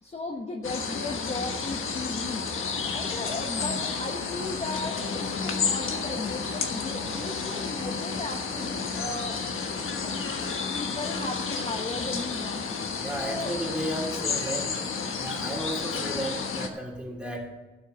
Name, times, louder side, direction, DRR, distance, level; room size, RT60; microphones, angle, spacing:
voice 1, 0.0-9.4 10.0-10.2 10.7-12.7 13.2-13.6, left 2 dB, 30° left, 1 dB, 1.1 m, -36 dB
sound 1, 0.6-16.7, left 5 dB, 80° left, 1.3 m, -31 dB
voice 2, 13.0-14.7 15.1-17.5, right 1 dB, 5° right, -2 dB, 3.2 m, -34 dB
13.0 x 6.5 x 6.9 m, 1.1 s
wide cardioid pair, 105°, 21 cm